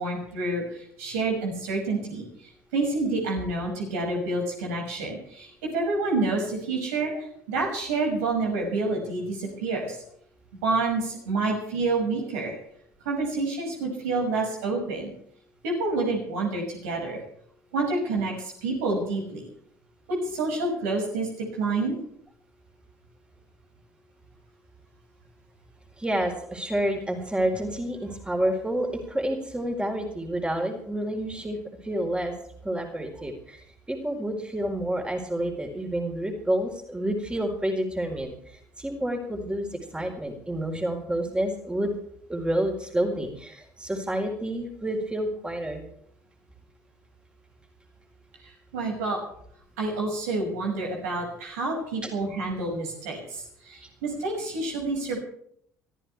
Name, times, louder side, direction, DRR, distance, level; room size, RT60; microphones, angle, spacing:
voice 1, 0.0-2.2 2.7-7.1 7.5-10.0 10.6-12.6 13.0-15.1 15.6-17.2 17.7-19.4 20.1-22.0 48.4-49.2 49.8-55.3, right 3 dB, 70° right, 0 dB, 6.3 m, -28 dB
voice 2, 26.0-32.3 32.6-39.7 39.9-41.9 42.3-45.9 52.0-52.1, right 1 dB, 10° right, 3 dB, 4.5 m, -29 dB
24.5 x 14.5 x 3.5 m, 0.67 s
figure-of-eight pair, 55°, 9 cm